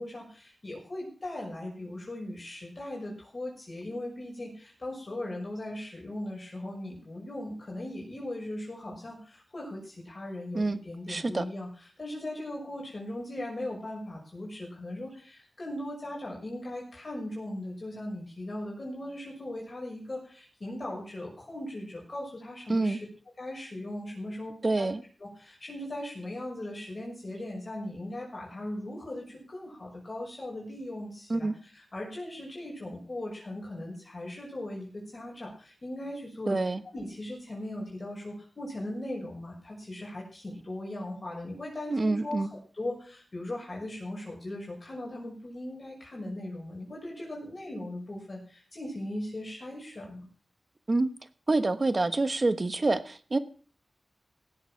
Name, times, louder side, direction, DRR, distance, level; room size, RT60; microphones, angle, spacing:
voice 1, 0.0-11.7 12.0-23.1 23.4-24.9 25.2-36.6 36.9-50.3, left 1 dB, 45° left, -2 dB, 6.0 m, -39 dB
voice 2, 11.1-11.5 22.7-23.0 24.6-25.0 31.3-31.5 36.5-36.8 41.9-42.5 50.9-51.1 51.5-53.4, right 2 dB, 40° right, 12 dB, 1.2 m, -27 dB
17.5 x 8.0 x 5.8 m, 0.41 s
wide cardioid pair, 65°, 0 cm